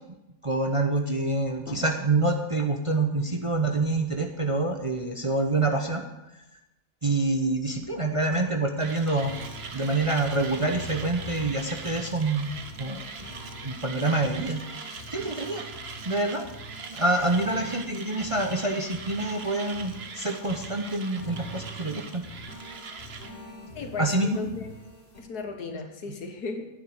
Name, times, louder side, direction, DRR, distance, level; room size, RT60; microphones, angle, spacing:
voice 1, 0.4-6.0 7.0-9.3 9.7-12.5 12.8-13.0 13.6-14.6 14.9-15.7 16.0-16.4 16.9-22.2 24.0-24.5, right 2 dB, 25° right, 4 dB, 0.7 m, -26 dB
Mechanisms, 8.8-23.3, right 5 dB, 45° right, 1.1 m, -41 dB
sound 1, 9.2-25.2, equal, 35° left, 3.3 m, -45 dB
voice 2, 23.7-24.7 25.2-26.7, left 4 dB, 85° left, 5 dB, 1.9 m, -36 dB
10.0 x 9.4 x 6.6 m, 0.93 s
omnidirectional pair, 1.6 m